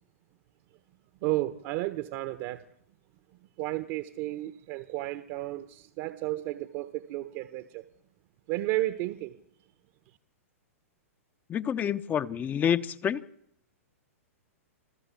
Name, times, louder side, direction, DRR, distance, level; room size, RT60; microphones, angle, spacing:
voice 1, 1.2-2.6 3.6-7.8 8.5-9.4, right 17 dB, 45° right, 12 dB, 1.3 m, -32 dB
voice 2, 11.5-13.2, left 8 dB, 20° left, 10 dB, 0.9 m, -28 dB
27.5 x 15.5 x 8.4 m, 0.70 s
hypercardioid pair, 120°, 8 cm